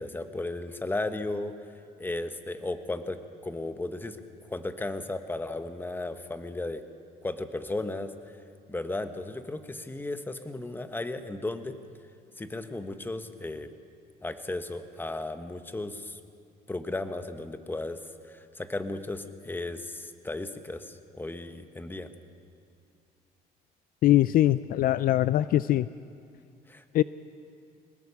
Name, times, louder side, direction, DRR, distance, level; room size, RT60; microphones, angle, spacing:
voice 1, 0.0-1.5 2.0-4.2 4.4-6.8 7.2-8.1 8.7-11.8 12.4-13.7 14.2-16.2 16.7-22.1 26.7-27.0, left 2 dB, 10° left, 9 dB, 1.2 m, -35 dB
voice 2, 24.0-25.9 26.9-27.0, left 13 dB, 60° left, 16 dB, 0.4 m, -22 dB
22.5 x 19.5 x 7.0 m, 2.3 s
cardioid pair, 110°, 17 cm